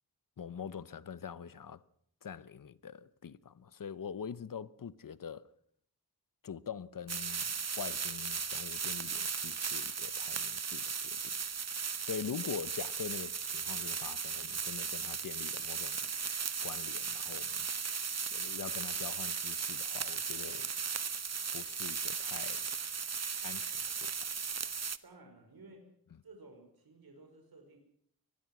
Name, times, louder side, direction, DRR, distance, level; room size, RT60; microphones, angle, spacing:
voice 1, 0.4-1.8 2.2-5.5 6.4-11.4 12.0-16.1 16.6-17.7 18.3-20.7 21.5-22.7 23.4-24.1, left 7 dB, 60° left, 1.0 m, -44 dB
sound 1, 7.1-25.0, right 6 dB, 45° right, 1.0 m, -36 dB
voice 2, 25.0-25.9 26.2-27.8, right 2 dB, 75° right, 5.6 m, -55 dB
25.0 x 20.5 x 6.2 m
wide cardioid pair, 105°, 37 cm